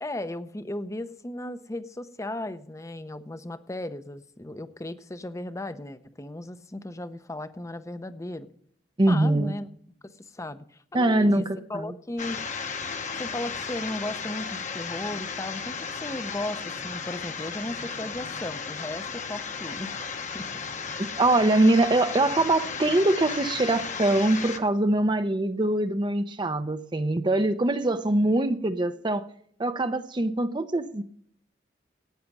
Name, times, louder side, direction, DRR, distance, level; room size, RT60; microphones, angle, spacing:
voice 1, 0.0-8.5 9.1-9.7 10.0-11.4 11.7-12.4 13.2-20.5, left 1 dB, 15° left, 12 dB, 0.6 m, -36 dB
voice 2, 9.0-9.5 10.9-11.9 21.0-29.3 29.6-31.0, right 2 dB, 25° right, 9 dB, 0.6 m, -23 dB
sound 1, 12.2-24.6, left 5 dB, 40° left, 1.0 m, -35 dB
14.0 x 9.4 x 6.0 m, 0.64 s
head